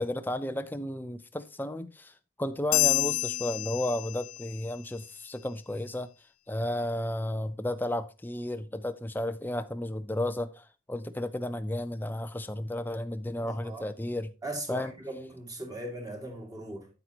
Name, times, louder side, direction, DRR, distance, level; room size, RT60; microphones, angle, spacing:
voice 1, 0.0-2.1 2.4-6.1 6.5-14.3 14.7-14.9, left 1 dB, 10° left, 0.5 m, -33 dB
sound 1, 2.7-4.6, left 19 dB, 85° left, 0.7 m, -28 dB
voice 2, 13.4-13.9 14.4-16.9, right 1 dB, 20° right, 2.2 m, -39 dB
10.0 x 8.0 x 2.9 m
head